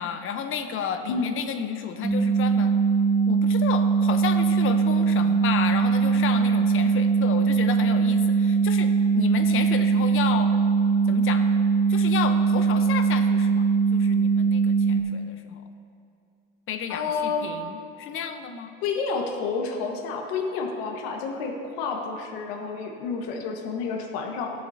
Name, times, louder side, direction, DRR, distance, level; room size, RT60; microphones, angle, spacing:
voice 1, 0.0-2.7 3.3-10.5 11.1-11.5 11.9-15.7 16.7-18.7, left 7 dB, 45° left, 7 dB, 1.0 m, -32 dB
voice 2, 1.1-1.4 16.9-17.4 18.8-24.5, left 5 dB, 75° left, 1 dB, 1.6 m, -29 dB
sound 1, 2.0-15.0, right 5 dB, 25° right, 1.8 m, -21 dB
19.0 x 7.5 x 2.9 m, 2.7 s
supercardioid pair, 110°, 30 cm